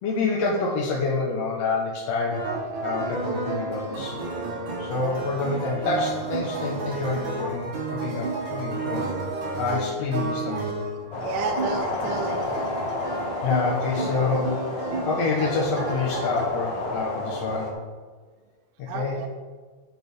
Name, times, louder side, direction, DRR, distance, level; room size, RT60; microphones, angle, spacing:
voice 1, 0.0-4.2 4.8-9.1 9.6-10.7 13.4-17.8 18.8-19.2, left 4 dB, 60° left, -4 dB, 1.8 m, -27 dB
sound 1, 2.3-16.5, right 3 dB, 60° right, 1.3 m, -31 dB
sound 2, 2.5-7.0, equal, 30° left, 0.5 m, -46 dB
sound 3, 11.1-17.7, left 2 dB, 75° left, 1.0 m, -31 dB
voice 2, 11.2-12.5 13.0-13.2 15.0-15.1 18.9-19.3, right 5 dB, 75° right, 5 dB, 2.0 m, -32 dB
12.5 x 4.2 x 5.4 m, 1.4 s
omnidirectional pair, 3.9 m